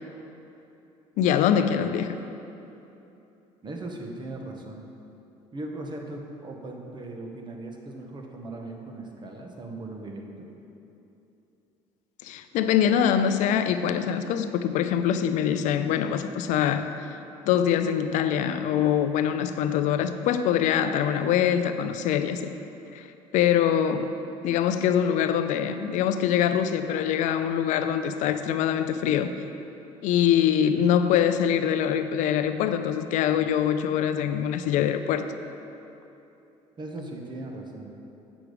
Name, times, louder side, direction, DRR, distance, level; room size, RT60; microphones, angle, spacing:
voice 1, 1.2-2.2 12.2-17.2 17.5-22.5 22.9-23.1 23.3-24.2 24.4-29.3 30.0-35.3, left 9 dB, 70° left, 10 dB, 0.5 m, -24 dB
voice 2, 3.6-4.9 5.5-10.5 36.8-37.9, right 2 dB, 35° right, 2 dB, 1.3 m, -38 dB
8.3 x 6.1 x 5.0 m, 2.9 s
supercardioid pair, 80°, 13 cm